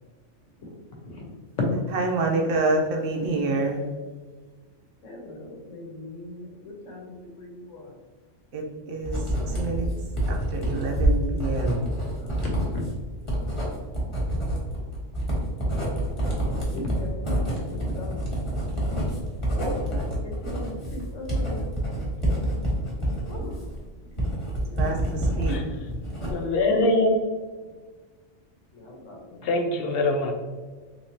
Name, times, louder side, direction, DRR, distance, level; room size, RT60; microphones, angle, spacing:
voice 1, 0.6-1.3 1.6-1.7 5.0-7.9 12.2-12.8 15.6-18.4 19.6-20.3 20.6-21.7 23.3-23.6 24.5-24.9 25.2-25.3 28.7-29.8, left 2 dB, 85° left, 0 dB, 1.2 m, -37 dB
voice 2, 1.9-3.9 8.5-9.9 10.3-12.0 24.8-26.4, right 2 dB, 85° right, 1 dB, 1.0 m, -28 dB
Writing, 9.0-25.6 25.9-26.6, right 1 dB, 25° left, 1.2 m, -27 dB
voice 3, 26.3-27.2 29.4-30.3, left 1 dB, 60° left, 4 dB, 0.7 m, -23 dB
3.6 x 3.0 x 2.6 m, 1.4 s
omnidirectional pair, 1.3 m